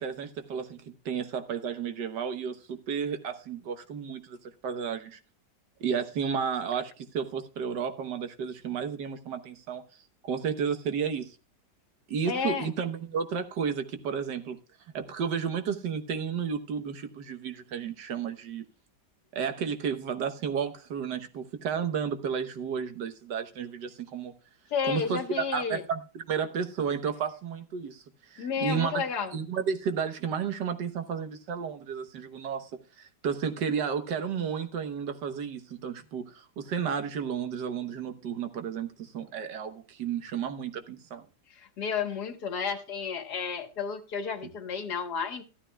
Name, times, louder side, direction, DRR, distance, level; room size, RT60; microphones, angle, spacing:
voice 1, 0.0-4.4 4.6-5.2 5.8-9.8 10.2-11.4 12.1-14.6 14.9-18.6 19.3-24.3 24.8-29.0 29.3-32.7 33.0-41.2, right 7 dB, 80° right, 1.7 m, -32 dB
voice 2, 12.3-12.7 24.7-25.8 28.4-29.3 41.6-45.4, left 6 dB, 65° left, 1.9 m, -32 dB
13.5 x 12.5 x 2.3 m
omnidirectional pair, 1.8 m